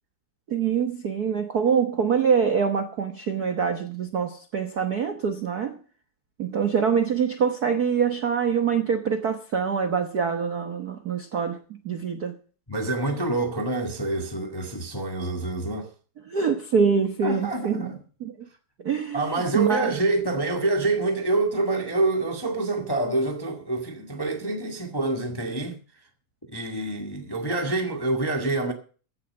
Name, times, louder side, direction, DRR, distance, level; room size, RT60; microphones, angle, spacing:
voice 1, 0.5-5.8 6.4-11.6 11.8-12.3 16.3-18.3 18.8-19.9, right 6 dB, 75° right, 0.8 m, -25 dB
voice 2, 12.7-15.9 17.2-18.0 19.1-25.8 26.5-28.7, right 2 dB, 15° left, 0.8 m, -26 dB
15.5 x 7.0 x 7.4 m
omnidirectional pair, 3.5 m